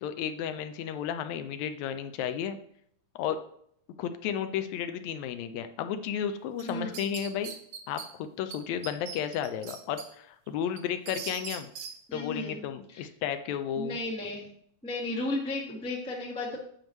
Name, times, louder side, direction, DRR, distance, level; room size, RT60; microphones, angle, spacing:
voice 1, 0.0-2.6 3.2-3.4 4.0-7.5 7.9-11.7 12.1-14.0, left 9 dB, 80° left, 9 dB, 1.8 m, -33 dB
voice 2, 6.6-6.9 12.1-13.0 13.8-14.5 14.8-16.6, left 2 dB, 10° left, -2 dB, 0.3 m, -34 dB
sound 1, 6.6-8.1 8.5-8.6 8.8-10.1 10.5-11.9, right 7 dB, 85° right, 2.2 m, -40 dB
8.9 x 3.1 x 6.4 m, 0.68 s
omnidirectional pair, 3.3 m